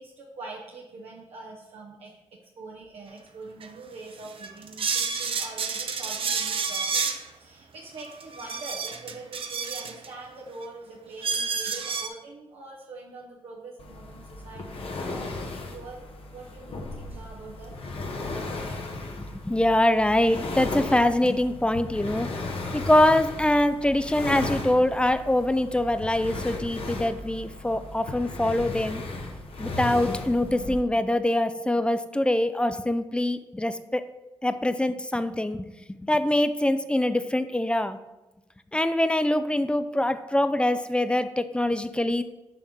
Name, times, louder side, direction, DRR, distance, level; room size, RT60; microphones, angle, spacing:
voice 1, 0.0-2.1 2.6-15.2 15.6-16.0 16.3-17.7, right 3 dB, 75° right, -4 dB, 0.9 m, -43 dB
sound 1, 3.6-3.7 4.2-7.2 8.0-10.1 10.6-10.7 11.2-12.1, right 5 dB, 60° right, 0.6 m, -29 dB
sound 2, 13.8-30.8, left 2 dB, 65° left, 0.9 m, -36 dB
voice 2, 19.3-22.3 22.7-29.0 29.6-34.0 34.4-35.7 36.0-38.0 38.7-42.2, left 1 dB, 10° left, 12 dB, 0.4 m, -24 dB
5.6 x 3.5 x 5.6 m, 1.0 s
cardioid pair, 60°, 10 cm